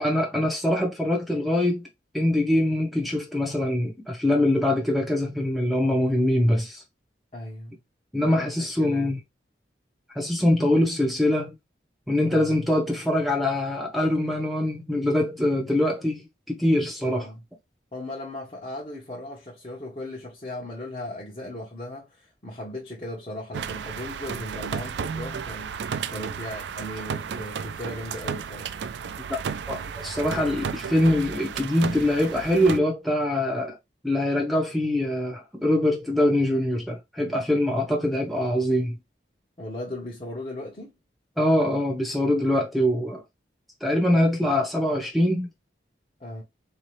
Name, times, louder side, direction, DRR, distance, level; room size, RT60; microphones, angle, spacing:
voice 1, 0.0-1.9 2.1-6.8 8.1-9.2 10.1-11.5 12.1-17.3 29.3-29.4 29.7-33.7 34.0-39.0 41.4-43.2 43.8-45.5, left 1 dB, ahead, 0.7 m, -23 dB
voice 2, 7.3-7.8 8.2-9.2 12.3-12.6 17.0-17.4 17.9-28.8 39.6-40.9 46.2-46.4, left 1 dB, 35° left, 0.9 m, -37 dB
sound 1, 23.5-32.8, right 6 dB, 80° right, 0.4 m, -33 dB
4.0 x 2.8 x 3.1 m
head